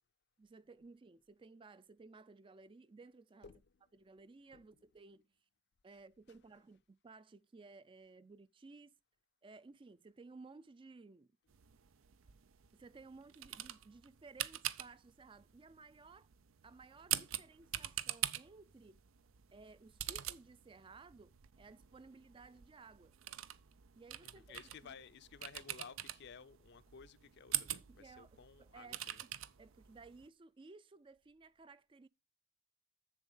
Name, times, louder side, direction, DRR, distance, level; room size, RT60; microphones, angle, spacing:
voice 1, 0.4-3.5 3.9-5.2 5.8-8.9 9.4-11.3 12.7-16.3 16.6-19.0 19.5-23.1 23.9-25.0 27.9-29.2 29.6-32.1, right 3 dB, 25° right, 0.4 m, -57 dB
sound 1, 11.5-30.3, right 13 dB, 85° right, 0.6 m, -45 dB
voice 2, 24.2-29.2, left 6 dB, 55° left, 0.5 m, -55 dB
7.2 x 7.1 x 5.5 m
head